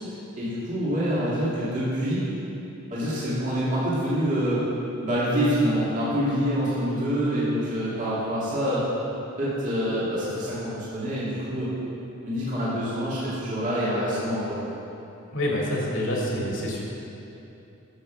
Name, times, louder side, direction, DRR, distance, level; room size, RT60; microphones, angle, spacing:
voice 1, 0.4-2.3 2.9-4.6 5.0-8.9 9.4-11.7 12.2-14.6, equal, 40° right, -9 dB, 2.4 m, -26 dB
voice 2, 15.3-16.9, left 1 dB, 65° left, -4 dB, 2.2 m, -27 dB
9.5 x 6.8 x 6.1 m, 2.9 s
head